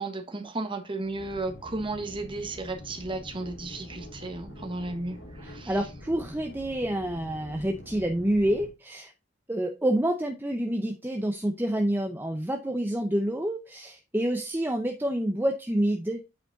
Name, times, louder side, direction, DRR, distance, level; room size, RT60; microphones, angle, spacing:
voice 1, 0.0-5.8, right 2 dB, 25° right, 1.1 m, -34 dB
sound 1, 1.0-8.7, equal, 70° left, 2.5 m, -45 dB
voice 2, 5.4-9.1 9.5-16.2, right 1 dB, 10° right, 0.5 m, -28 dB
8.6 x 4.8 x 3.8 m
head